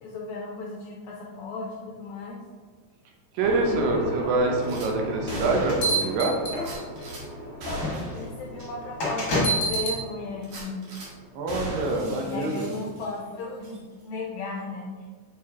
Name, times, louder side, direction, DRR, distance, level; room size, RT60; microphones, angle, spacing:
voice 1, 0.0-2.4 3.4-3.9 7.4-7.8 8.1-10.9 12.2-14.9, left 3 dB, 80° left, -1 dB, 1.7 m, -36 dB
voice 2, 3.3-6.4 11.3-12.7, right 2 dB, 80° right, 1 dB, 2.5 m, -25 dB
sound 1, 3.4-13.5, equal, 30° right, 1.0 m, -38 dB
Gunshot gunfire / Glass, 4.6-4.9 5.3-6.0 6.6-7.2 7.6-8.3 8.6-8.7 9.1-9.2 10.4-11.1 11.5-13.3 13.6-13.8, equal, 55° right, 2.6 m, -37 dB
sound 2, 5.3-7.0 7.8-7.9 9.0-10.0, right 1 dB, 45° left, 1.3 m, -26 dB
6.5 x 4.7 x 3.5 m, 1.5 s
omnidirectional pair, 4.0 m